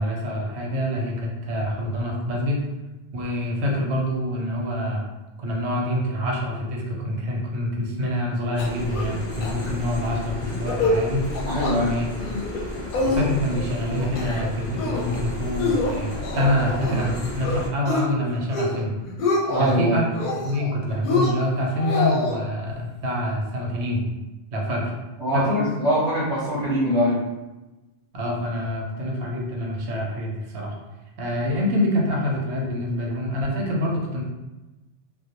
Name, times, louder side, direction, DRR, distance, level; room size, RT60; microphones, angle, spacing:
voice 1, 0.0-2.6 3.1-5.0 5.4-11.2 11.8-12.1 13.0-19.0 19.6-20.1 20.4-24.0 24.5-24.9 25.3-25.6 28.1-30.7 31.2-34.2, left 1 dB, 90° right, -1 dB, 0.9 m, -26 dB
sound 1, 8.5-17.7, left 1 dB, 20° left, 0.3 m, -33 dB
sound 2, 8.6-9.1 9.4-9.5 9.9-10.1 10.5-11.0 11.3-11.8 12.2-12.6 12.9-13.6 14.0-14.5 14.8-15.2 15.6-17.1 17.4-18.1 18.4-18.8 19.1-19.7 20.1-20.7 21.0-22.4, left 2 dB, 60° left, 0.6 m, -26 dB
voice 2, 11.4-11.9 19.5-20.0 25.2-27.2, equal, 35° right, -9 dB, 0.6 m, -23 dB
2.2 x 2.1 x 2.8 m, 1.1 s
omnidirectional pair, 1.1 m